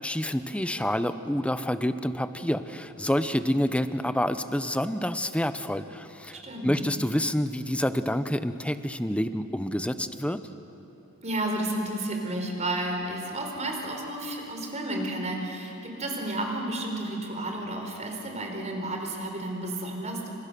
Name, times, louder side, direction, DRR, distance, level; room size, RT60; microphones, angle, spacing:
voice 1, 0.0-10.4, left 1 dB, 5° left, 11 dB, 0.8 m, -28 dB
voice 2, 6.4-6.7 11.2-20.3, right 1 dB, 30° right, 2 dB, 4.3 m, -32 dB
28.0 x 26.0 x 6.9 m, 2.9 s
head